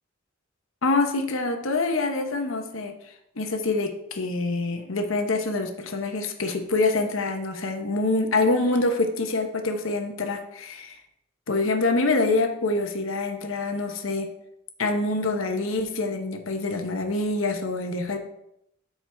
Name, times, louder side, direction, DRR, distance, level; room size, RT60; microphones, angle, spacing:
voice 1, 0.8-2.9 3.4-11.0 11.5-14.3 14.8-18.2, left 3 dB, 80° left, 5 dB, 1.0 m, -25 dB
12.5 x 4.7 x 3.5 m, 0.78 s
head